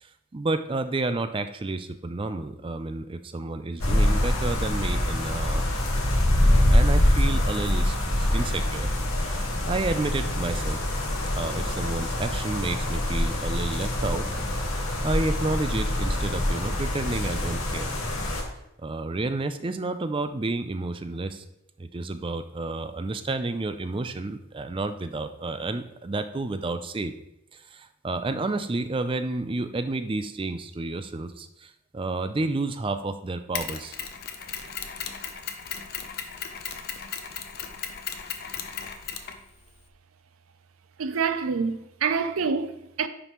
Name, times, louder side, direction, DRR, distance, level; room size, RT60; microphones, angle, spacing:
voice 1, 0.0-5.7 6.4-8.0 8.3-8.9 9.2-10.8 11.4-14.3 15.0-17.9 18.8-21.4 21.8-27.1 27.5-34.0, right 2 dB, 25° right, 0.4 m, -30 dB
sound 1, 3.8-18.4, left 1 dB, 85° left, 1.5 m, -25 dB
Mechanisms, 33.5-39.9, left 7 dB, 50° left, 0.7 m, -36 dB
voice 2, 41.0-43.1, right 5 dB, 85° right, 0.5 m, -27 dB
9.7 x 5.3 x 3.1 m
head